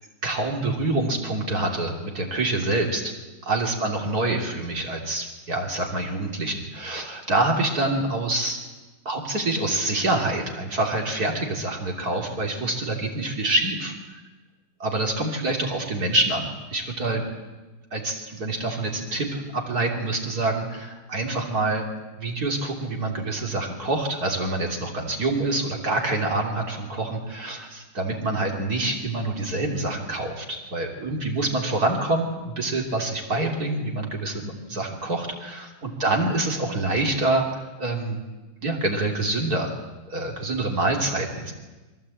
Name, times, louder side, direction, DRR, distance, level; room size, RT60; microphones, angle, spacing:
voice 1, 0.2-3.1 3.4-8.6 9.1-13.9 14.8-17.2 17.9-21.9 22.2-38.2 38.6-39.7 40.1-41.5, right 2 dB, 55° right, 0 dB, 3.6 m, -26 dB
23.0 x 17.5 x 8.6 m, 1.2 s
omnidirectional pair, 1.9 m